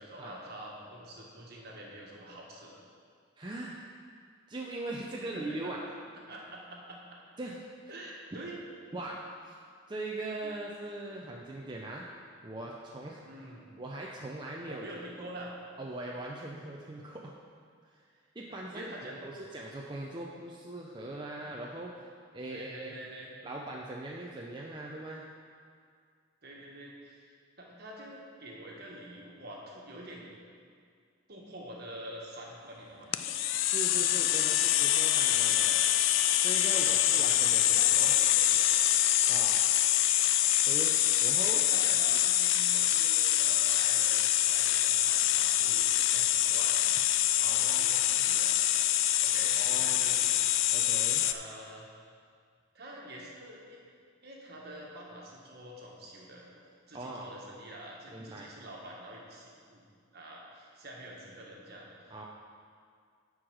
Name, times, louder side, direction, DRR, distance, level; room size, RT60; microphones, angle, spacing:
voice 1, 0.0-2.8 5.2-5.9 6.3-7.0 7.9-8.6 10.4-10.5 11.6-11.7 13.3-13.7 14.7-15.5 18.5-19.4 22.5-23.3 26.4-30.4 31.3-33.2 36.7-37.2 37.7-38.7 41.2-48.5 49.2-50.4 51.2-51.9 52.7-53.8 54.2-56.4 56.9-59.8 60.1-61.9, right 1 dB, 55° right, -3 dB, 1.7 m, -46 dB
voice 2, 3.4-3.8 4.5-5.8 7.4-7.6 7.8-7.9 8.3-8.5 8.9-9.6 9.9-12.1 12.4-13.2 13.8-14.8 15.8-17.3 17.8-18.0 18.3-22.0 22.3-23.0 23.4-25.3 33.7-35.9 36.4-38.1 39.3-39.6 40.6-40.9 41.2-41.6 42.1-42.2 45.6-45.8 47.5-48.2 49.5-50.2 50.7-51.2 56.9-57.3 58.1-58.5 62.1-62.2, right 2 dB, 25° right, -3 dB, 0.6 m, -41 dB
sound 1, 33.1-51.3, left 12 dB, 70° left, 0.4 m, -25 dB
9.9 x 4.8 x 6.3 m, 2.1 s
head